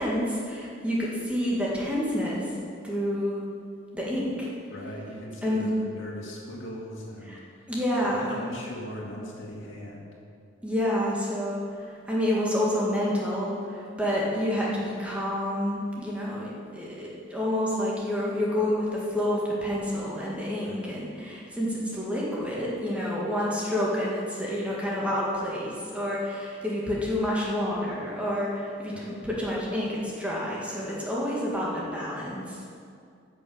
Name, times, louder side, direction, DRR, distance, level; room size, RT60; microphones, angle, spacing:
voice 1, 0.0-2.4 2.8-3.4 3.9-4.5 5.4-5.7 7.3-7.4 7.7-8.4 10.6-11.6 12.1-32.6, left 1 dB, 5° right, -6 dB, 1.8 m, -28 dB
voice 2, 4.7-7.3 8.0-10.1 20.6-20.8 28.9-29.1, equal, 70° left, -3 dB, 2.2 m, -39 dB
10.0 x 6.5 x 7.1 m, 2.3 s
head